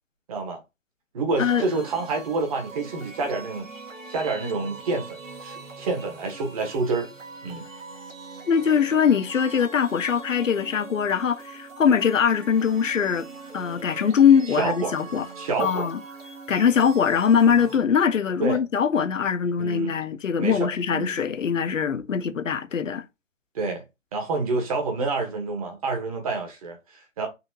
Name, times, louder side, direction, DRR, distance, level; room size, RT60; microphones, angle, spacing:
voice 1, 0.3-0.6 1.1-3.7 4.1-7.1 7.4-7.7 14.6-14.9 15.4-15.9 18.4-18.6 19.6-20.0 20.4-21.1 23.5-23.8 24.1-27.3, right 3 dB, 30° right, 1.1 m, -28 dB
sound 1, 1.4-17.8, right 4 dB, 85° right, 1.4 m, -42 dB
voice 2, 8.5-13.3 13.5-15.3 15.6-16.0 16.5-23.0, left 7 dB, 80° left, 0.7 m, -22 dB
4.1 x 2.8 x 2.7 m
figure-of-eight pair, 145°, 38 cm